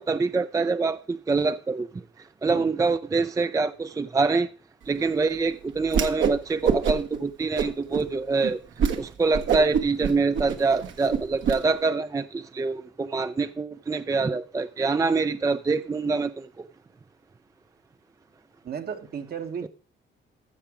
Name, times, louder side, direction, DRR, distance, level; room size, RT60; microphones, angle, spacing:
voice 1, 0.0-1.9 2.4-4.5 4.9-8.6 9.0-16.6 19.6-19.7, right 4 dB, 15° right, 0.4 m, -25 dB
Whoosh swoosh swish, 5.9-6.4 6.6-7.2 7.6-8.0 8.4-8.5 8.8-9.0 9.3-11.6, right 7 dB, 75° right, 1.3 m, -25 dB
voice 2, 18.6-19.7, right 7 dB, 50° right, 1.1 m, -34 dB
14.5 x 6.0 x 4.9 m
cardioid pair, 90°, 20 cm